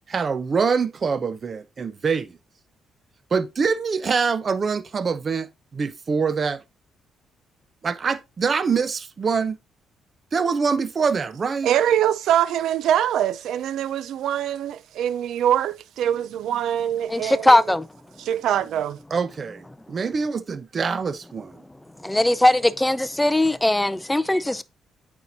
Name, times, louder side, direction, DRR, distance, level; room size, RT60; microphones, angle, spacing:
voice 1, 0.1-2.4 3.3-6.6 7.8-9.6 10.3-11.7 19.1-21.6, right 5 dB, 40° right, 0.7 m, -24 dB
voice 2, 11.6-17.8 18.2-19.0, right 10 dB, 80° right, 0.4 m, -23 dB
voice 3, 17.1-17.8 22.0-24.6, left 1 dB, 10° left, 0.5 m, -19 dB
8.7 x 4.4 x 2.7 m
cardioid pair, 90°, 0 cm